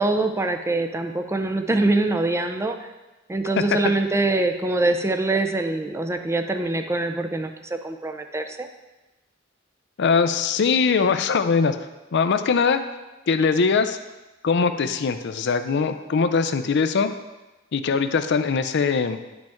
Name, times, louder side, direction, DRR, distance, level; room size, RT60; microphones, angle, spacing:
voice 1, 0.0-2.8 3.3-8.7, right 2 dB, 15° right, 6 dB, 0.5 m, -24 dB
voice 2, 3.6-3.9 10.0-11.8 12.1-12.8 13.3-14.0 14.4-17.1 17.7-19.2, left 5 dB, 60° left, 10 dB, 0.5 m, -21 dB
10.5 x 5.2 x 3.6 m, 1.1 s
head